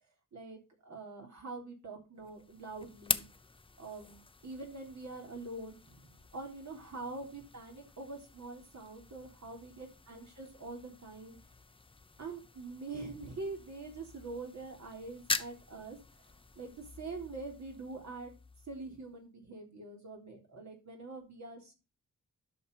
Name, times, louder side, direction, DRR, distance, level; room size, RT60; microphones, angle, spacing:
voice 1, 0.3-3.2 3.8-11.4 12.2-16.0 16.3-18.3 18.7-21.7, right 3 dB, 65° right, 2 dB, 3.7 m, -45 dB
sound 1, 2.2-19.2, left 3 dB, 15° left, 0.6 m, -44 dB
11.5 x 6.2 x 4.8 m, 0.31 s
wide cardioid pair, 135°, 31 cm